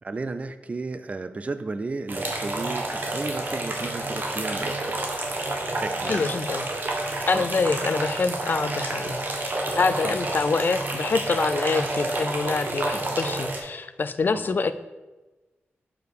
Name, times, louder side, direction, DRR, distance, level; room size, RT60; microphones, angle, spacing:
voice 1, 0.0-5.1 5.8-6.3 7.3-7.5 10.0-10.1 12.9-13.2 14.3-14.6, right 3 dB, 30° right, 11 dB, 0.3 m, -33 dB
sound 1, 2.1-13.6, right 2 dB, 50° right, 1.1 m, -29 dB
voice 2, 6.1-6.7 7.3-14.7, left 4 dB, 50° left, 11 dB, 0.4 m, -26 dB
6.8 x 4.9 x 4.7 m, 1.1 s
wide cardioid pair, 95°, 4 cm